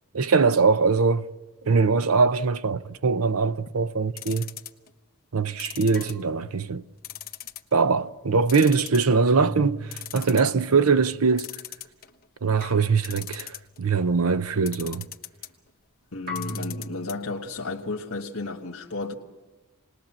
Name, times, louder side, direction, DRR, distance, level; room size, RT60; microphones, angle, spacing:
voice 1, 0.1-1.3 1.6-4.5 5.3-6.8 7.7-11.6 12.4-15.1, right 4 dB, 80° right, 0.7 m, -22 dB
sound 1, 4.2-4.9 5.6-6.6 7.0-7.7 8.1-8.2 8.5-9.3 9.6-9.7 9.9-10.5 11.4-12.3 13.0-13.8 14.7-15.5 16.3-17.1 17.4-17.5 17.8-17.9, left 12 dB, 45° left, 1.2 m, -38 dB
sound 2, 5.9-7.4 9.2-10.3 12.6-13.6 16.3-17.3, equal, 45° right, 3.5 m, -38 dB
voice 2, 16.1-19.1, left 3 dB, 70° left, 1.6 m, -33 dB
28.0 x 20.0 x 7.4 m
head